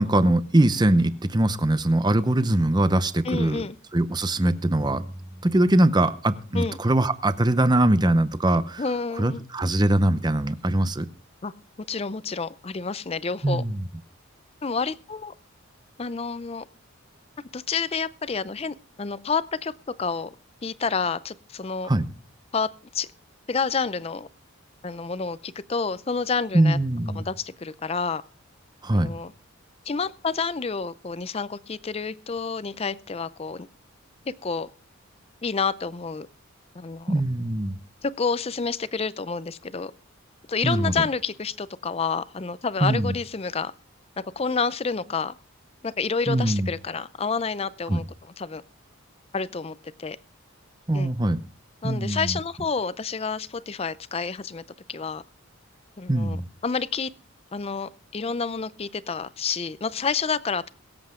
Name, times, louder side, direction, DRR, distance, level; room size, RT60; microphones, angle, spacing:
voice 1, 0.0-3.6 3.9-5.0 5.4-8.8 9.2-11.1 13.4-13.8 21.9-22.1 26.5-27.2 28.8-29.1 37.1-37.7 40.6-40.9 42.8-43.1 46.3-46.7 47.9-48.0 50.9-51.4 51.8-52.4 56.1-56.5, right 1 dB, 20° right, 0.7 m, -22 dB
voice 2, 3.2-3.8 6.5-6.8 8.8-9.4 11.4-11.5 11.9-13.6 14.6-15.3 16.0-16.6 17.5-19.7 20.0-20.3 20.6-21.9 22.5-23.1 23.5-24.3 24.8-26.8 27.1-28.2 28.9-29.3 29.9-33.7 34.3-34.7 35.4-36.3 36.7-37.1 38.0-39.9 40.5-43.7 44.2-45.3 45.8-48.0 48.4-48.6 49.3-50.2 50.9-51.1 51.8-54.6 54.9-55.2 56.0-57.1 57.5-60.7, left 5 dB, 30° left, 0.5 m, -29 dB
22.5 x 7.8 x 3.7 m
head